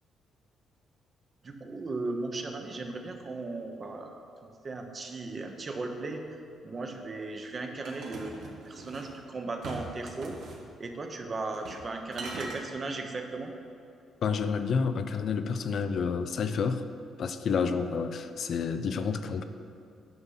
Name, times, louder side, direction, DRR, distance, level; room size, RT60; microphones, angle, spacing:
voice 1, 1.4-10.4 10.8-13.5, right 3 dB, 35° right, 4 dB, 1.0 m, -37 dB
sound 1, 7.8-9.1 9.6-10.6 11.5-11.9 12.1-12.6, right 3 dB, 70° right, 1.4 m, -41 dB
voice 2, 14.2-16.8 17.2-19.4, left 5 dB, 60° left, 9 dB, 0.5 m, -29 dB
9.4 x 5.6 x 5.6 m, 2.5 s
cardioid pair, 90°, 0 cm